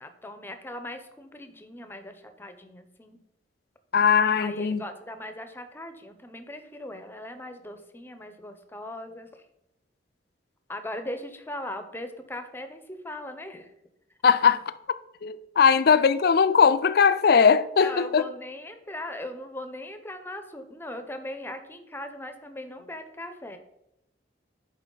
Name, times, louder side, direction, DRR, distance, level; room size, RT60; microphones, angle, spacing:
voice 1, 0.0-3.2 4.4-9.4 10.7-13.7 17.8-23.6, left 1 dB, 10° left, 0.6 m, -39 dB
voice 2, 3.9-4.8 14.2-14.7 15.2-18.2, left 6 dB, 55° left, 0.4 m, -20 dB
10.5 x 4.5 x 3.8 m
head